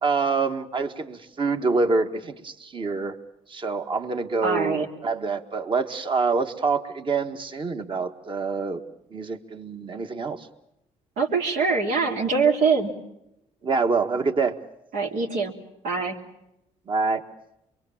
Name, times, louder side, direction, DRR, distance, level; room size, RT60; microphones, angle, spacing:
voice 1, 0.0-3.2 3.5-8.8 9.1-10.5 13.6-14.5 16.9-17.2, right 4 dB, 40° right, 6 dB, 1.7 m, -26 dB
voice 2, 4.4-4.9 11.2-12.9 14.9-15.5 15.8-16.2, right 4 dB, 80° right, 1 dB, 3.1 m, -23 dB
24.5 x 23.5 x 7.3 m, 0.85 s
cardioid pair, 95°, 13 cm